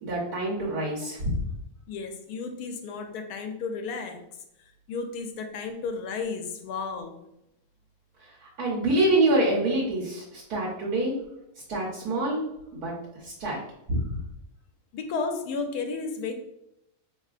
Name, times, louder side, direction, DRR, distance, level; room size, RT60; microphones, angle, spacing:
voice 1, 0.0-1.4 8.2-11.1 11.7-12.4 12.7-13.6 13.9-14.2, right 1 dB, 75° right, -5 dB, 1.4 m, -26 dB
voice 2, 1.9-4.2 4.9-7.2 14.9-16.3, left 4 dB, 85° left, 5 dB, 1.1 m, -33 dB
4.7 x 3.2 x 2.4 m, 0.84 s
omnidirectional pair, 1.6 m